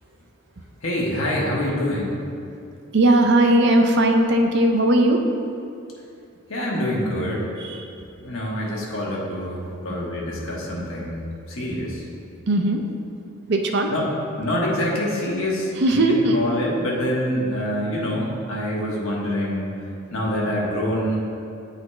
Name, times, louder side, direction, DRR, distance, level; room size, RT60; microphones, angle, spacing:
voice 1, 0.8-2.2 6.5-7.5 8.2-12.0 13.9-19.7 20.1-21.3, equal, 70° left, -4 dB, 1.2 m, -26 dB
voice 2, 2.9-5.2 7.6-7.8 12.5-12.8 13.5-13.9 15.8-16.4, right 1 dB, 50° right, 3 dB, 0.5 m, -18 dB
8.7 x 4.0 x 3.1 m, 2.5 s
head